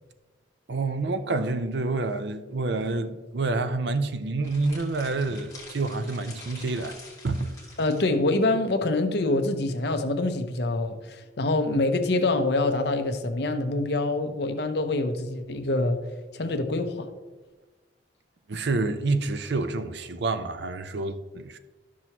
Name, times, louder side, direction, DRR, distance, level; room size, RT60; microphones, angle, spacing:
voice 1, 0.7-7.0 7.2-7.6 18.5-21.6, right 3 dB, 65° right, 0.5 m, -28 dB
sound 1, 4.4-8.1, left 3 dB, 20° left, 1.6 m, -46 dB
voice 2, 7.8-16.0 16.3-17.1, left 2 dB, 60° left, 0.7 m, -25 dB
12.5 x 6.1 x 3.0 m
head